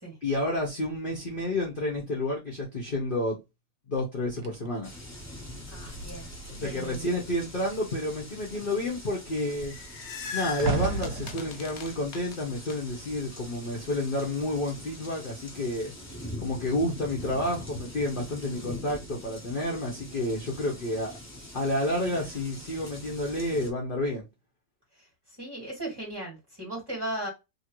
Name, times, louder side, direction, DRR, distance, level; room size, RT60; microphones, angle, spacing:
voice 1, 0.2-3.4 3.9-4.9 6.5-9.7 10.3-15.9 16.4-21.2 21.5-24.3, left 1 dB, 40° left, 0.9 m, -30 dB
sound 1, 4.4-7.1 7.4-7.8 8.1-13.4 14.1-14.4, right 5 dB, 75° right, 1.2 m, -37 dB
sound 2, 4.8-23.7, left 1 dB, 15° left, 0.6 m, -44 dB
voice 2, 5.7-7.2 21.9-22.3 25.4-27.3, right 1 dB, 15° right, 1.8 m, -37 dB
sound 3, 9.5-12.8, left 7 dB, 75° left, 0.6 m, -39 dB
3.0 x 2.7 x 2.9 m
omnidirectional pair, 1.9 m